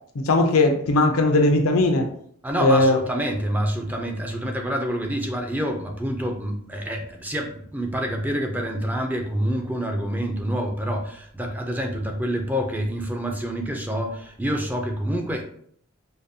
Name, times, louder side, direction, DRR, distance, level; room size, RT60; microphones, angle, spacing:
voice 1, 0.2-2.1 2.6-3.0, left 2 dB, 85° left, 5 dB, 0.6 m, -18 dB
voice 2, 2.4-15.4, equal, 10° right, 2 dB, 0.4 m, -27 dB
5.0 x 2.3 x 2.7 m, 0.63 s
head